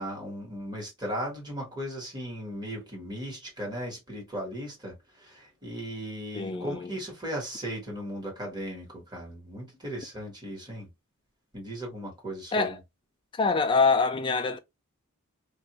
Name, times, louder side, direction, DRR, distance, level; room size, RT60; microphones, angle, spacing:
voice 1, 0.0-10.9 11.5-12.8, equal, 20° right, 1.2 m, -37 dB
voice 2, 6.3-6.9 12.5-12.7 13.4-14.6, left 4 dB, 20° left, 0.3 m, -25 dB
2.5 x 2.2 x 2.8 m
head